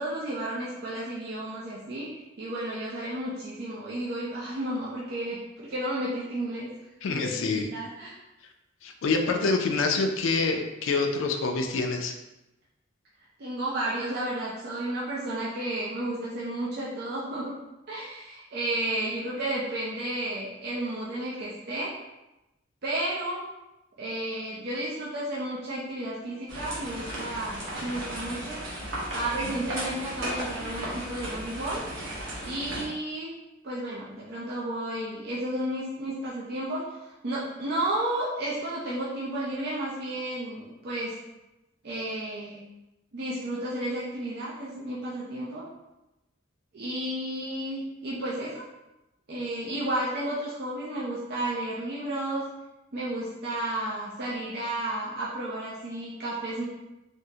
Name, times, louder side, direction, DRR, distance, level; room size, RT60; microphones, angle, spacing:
voice 1, 0.0-2.1 2.4-6.7 7.1-8.2 13.4-17.6 17.9-21.9 22.8-23.4 24.0-28.6 29.1-31.8 32.4-33.3 33.6-37.0 37.2-41.1 41.8-42.6 43.1-45.6 46.7-48.7 49.3-52.4 52.9-56.6, right 1 dB, 55° right, -6 dB, 0.5 m, -32 dB
voice 2, 7.0-7.7 8.8-12.1, left 3 dB, 80° left, 4 dB, 0.4 m, -26 dB
sound 1, 26.5-32.9, right 1 dB, 75° right, 0.9 m, -35 dB
3.6 x 2.0 x 2.7 m, 0.97 s
head